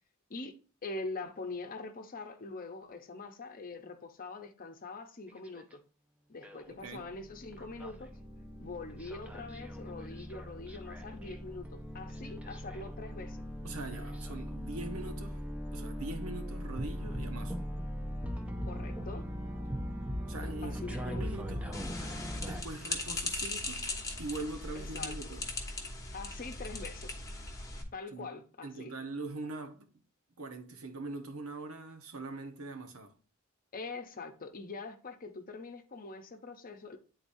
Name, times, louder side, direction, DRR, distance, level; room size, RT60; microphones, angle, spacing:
voice 1, 0.8-5.8 6.3-8.1 8.6-13.4 18.7-19.2 20.6-21.3 24.7-25.3 26.1-27.1 27.9-28.9 33.7-37.0, left 3 dB, 40° left, 0.7 m, -43 dB
sound 1, 5.3-5.7 6.4-6.7 7.0-22.6, equal, 5° right, 0.7 m, -40 dB
voice 2, 6.7-7.1 13.6-15.5 15.7-17.7 20.2-21.8 22.4-23.9 24.2-25.5 28.1-28.3 28.6-29.9 30.4-33.2, right 2 dB, 80° right, 1.1 m, -42 dB
sound 2, 21.7-27.8, left 3 dB, 15° left, 1.1 m, -39 dB
10.0 x 4.0 x 2.6 m
head